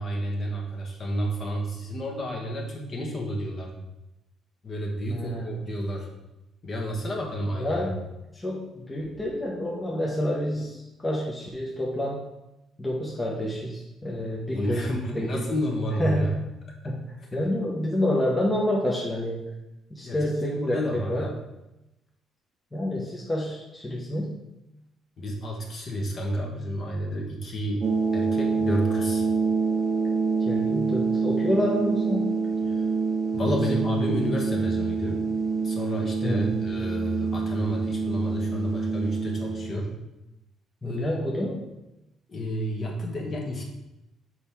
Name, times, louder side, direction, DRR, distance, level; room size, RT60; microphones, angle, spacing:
voice 1, 0.0-3.8 4.6-6.1 6.6-7.8 14.5-16.3 17.3-17.5 20.0-21.4 25.2-29.2 32.6-32.8 33.3-35.2 35.6-39.9 40.8-41.2 42.3-43.6, equal, 35° left, 0 dB, 1.2 m, -30 dB
voice 2, 5.1-5.7 7.5-8.1 8.3-12.3 12.8-15.5 16.0-16.5 16.8-19.5 19.9-21.3 22.7-24.4 30.5-32.4 33.4-33.9 36.2-36.6 40.8-41.7, left 1 dB, 15° left, -4 dB, 0.9 m, -28 dB
sound 1, 27.8-39.8, right 4 dB, 30° right, 0.7 m, -26 dB
6.4 x 4.3 x 3.5 m, 0.93 s
cardioid pair, 140°, 0 cm